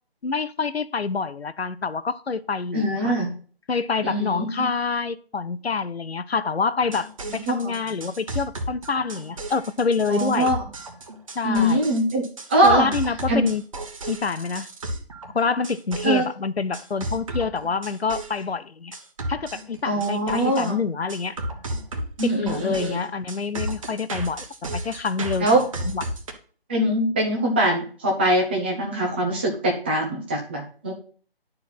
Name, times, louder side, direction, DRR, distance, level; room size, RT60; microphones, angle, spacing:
voice 1, 0.2-3.1 3.7-10.5 11.3-11.9 12.6-13.6 14.1-14.7 15.3-19.0 19.3-21.4 22.2-24.4 24.7-26.0, left 5 dB, 85° left, 0.8 m, -27 dB
voice 2, 2.7-3.3 4.0-4.5 7.2-7.8 10.1-10.6 11.4-12.9 13.3-13.4 16.0-16.2 19.8-20.8 22.2-23.0 25.4-25.6 26.7-30.9, right 1 dB, 10° right, 0.7 m, -22 dB
sound 1, 6.8-16.2 16.7-18.4 18.9-20.7 21.1-26.3, right 1 dB, 35° right, 1.1 m, -33 dB
10.5 x 4.5 x 5.7 m
figure-of-eight pair, 160°, 31 cm